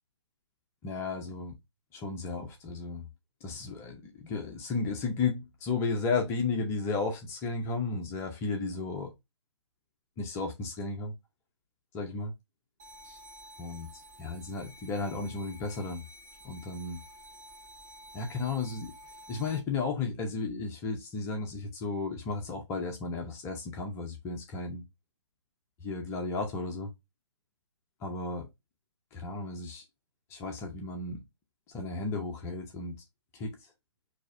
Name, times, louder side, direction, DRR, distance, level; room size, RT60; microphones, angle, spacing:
voice 1, 0.8-1.6 1.9-3.1 3.4-9.1 10.2-11.1 11.9-12.3 13.0-13.2 13.6-16.0 16.4-17.0 18.1-18.9 19.3-24.8 25.8-26.9 28.0-28.5 29.1-29.9 30.3-31.2 31.7-32.9 33.3-33.7, left 4 dB, 15° left, 0.7 m, -34 dB
sound 1, 12.8-19.6, equal, 35° right, 1.5 m, -51 dB
6.2 x 2.9 x 2.5 m
figure-of-eight pair, 135°, 15 cm